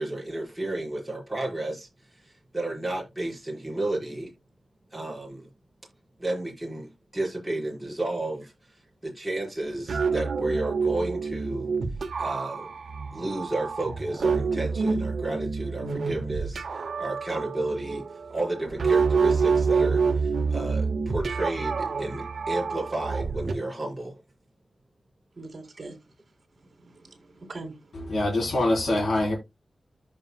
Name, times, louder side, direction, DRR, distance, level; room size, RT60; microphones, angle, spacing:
voice 1, 0.0-1.9 2.5-4.3 4.9-5.5 6.2-8.5 9.0-11.7 12.2-12.7 13.1-18.0 18.3-24.2, right 2 dB, 5° right, 5.3 m, -32 dB
sound 1, 9.6-23.5, right 5 dB, 70° right, 1.3 m, -27 dB
voice 2, 25.4-26.0 26.6-28.1, right 3 dB, 40° right, 3.7 m, -43 dB
voice 3, 27.9-29.3, left 1 dB, 70° left, 3.5 m, -24 dB
13.5 x 5.5 x 2.2 m
wide cardioid pair, 160°, 0 cm